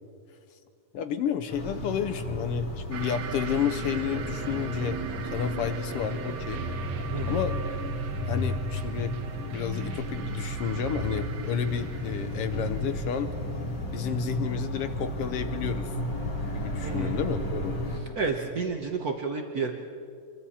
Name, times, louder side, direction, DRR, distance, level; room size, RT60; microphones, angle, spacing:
voice 1, 0.9-6.6 7.3-7.6 8.3-9.1 9.5-13.3 13.9-15.9 16.5-17.7, left 8 dB, 70° left, 9 dB, 1.5 m, -31 dB
sound 1, 1.5-18.0, equal, 50° left, 4.2 m, -33 dB
sound 2, 2.9-14.1, right 6 dB, 55° right, 1.4 m, -40 dB
voice 2, 16.8-17.2 18.1-19.7, right 4 dB, 90° right, 3 dB, 0.8 m, -30 dB
27.0 x 23.0 x 4.3 m, 2.4 s
omnidirectional pair, 3.3 m